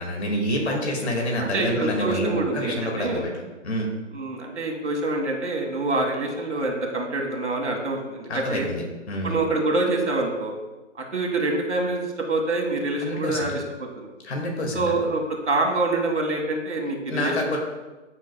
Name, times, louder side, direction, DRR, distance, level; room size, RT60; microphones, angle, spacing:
voice 1, 0.0-3.9 8.3-9.4 13.0-13.5 14.2-15.0 17.1-17.6, equal, 60° left, 0 dB, 2.1 m, -27 dB
voice 2, 0.7-1.1 1.4-3.2 4.1-8.7 9.2-10.5 11.1-13.5 14.7-17.6, right 2 dB, 65° right, 2 dB, 1.9 m, -26 dB
14.0 x 6.5 x 2.3 m, 1.1 s
hypercardioid pair, 165°, 37 cm